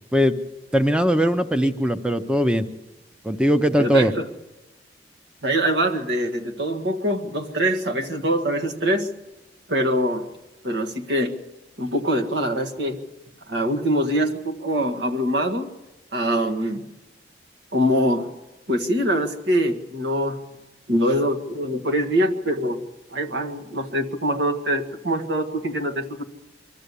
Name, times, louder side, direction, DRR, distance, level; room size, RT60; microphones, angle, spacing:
voice 1, 0.7-2.6 3.2-4.1, equal, 5° right, 9 dB, 0.6 m, -20 dB
voice 2, 3.8-4.3 5.4-9.1 9.7-10.3 10.6-11.4 11.8-13.0 13.5-15.7 16.1-16.8 17.7-18.3 18.7-20.4 20.9-22.8 23.1-26.2, equal, 75° right, 3 dB, 1.7 m, -23 dB
24.0 x 14.0 x 8.3 m, 1.1 s
head